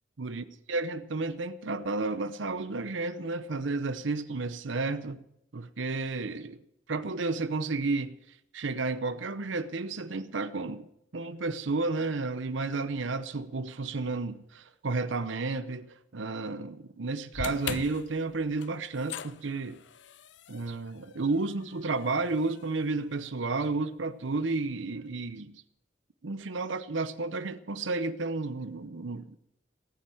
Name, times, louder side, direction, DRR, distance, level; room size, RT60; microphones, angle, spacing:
voice 1, 0.2-5.2 5.5-6.6 6.9-8.1 8.5-10.9 11.1-19.8 20.5-25.6 26.2-29.4, right 3 dB, 80° right, 0.8 m, -32 dB
sound 1, 17.3-23.6, left 7 dB, 65° left, 0.6 m, -42 dB
17.0 x 10.0 x 7.7 m
head